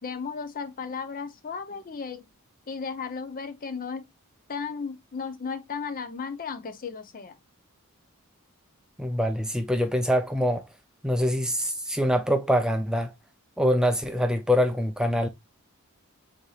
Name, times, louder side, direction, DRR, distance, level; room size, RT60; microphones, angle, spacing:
voice 1, 0.0-2.3 2.7-4.1 4.5-7.4, left 5 dB, 40° left, 0.7 m, -35 dB
voice 2, 9.0-10.6 11.0-13.1 13.6-15.3, equal, 5° right, 0.4 m, -24 dB
7.8 x 2.8 x 2.4 m
head